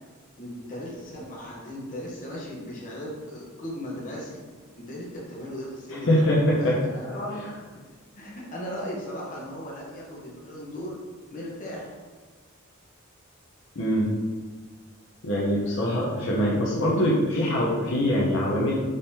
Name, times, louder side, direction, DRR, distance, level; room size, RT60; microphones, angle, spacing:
voice 1, 0.4-4.4 4.8-6.2 6.6-7.5 8.1-11.0 11.3-12.0, equal, 40° left, -4 dB, 1.0 m, -37 dB
voice 2, 6.0-6.7 13.8-14.1 15.2-18.8, equal, 60° left, -5 dB, 0.8 m, -23 dB
4.9 x 3.7 x 2.8 m, 1.4 s
head